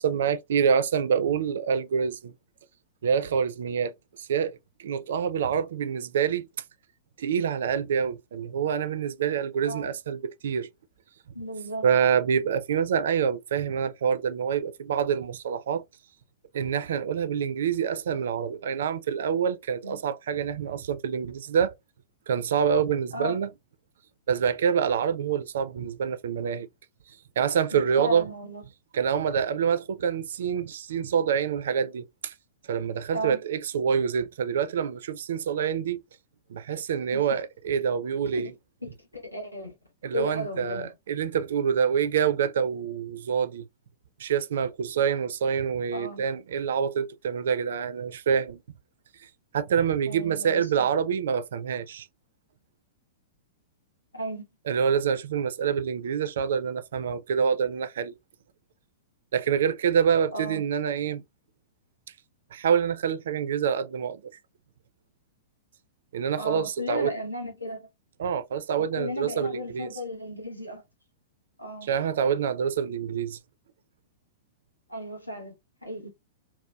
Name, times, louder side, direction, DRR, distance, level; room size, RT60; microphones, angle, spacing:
voice 1, 0.0-2.3 3.0-6.5 7.2-10.7 11.8-15.8 16.5-21.7 22.3-23.5 24.3-26.7 27.4-28.3 28.9-32.3 32.7-36.0 36.5-38.5 40.0-43.7 44.2-48.6 49.5-52.1 54.7-58.1 59.3-61.2 62.5-64.2 66.1-67.1 68.2-69.9 71.9-73.4, right 7 dB, 60° right, 0.3 m, -26 dB
voice 2, 11.3-11.8 19.8-20.0 23.1-23.4 27.7-28.6 33.1-33.4 37.1-37.2 38.3-38.4 38.8-39.8 40.1-40.9 45.9-46.2 50.1-50.8 54.1-54.5 60.3-60.6 66.4-67.9 68.8-70.8 71.6-71.9 74.9-75.6 75.8-76.1, equal, 90° left, 0.8 m, -35 dB
2.7 x 2.1 x 2.2 m
figure-of-eight pair, 100°, 0 cm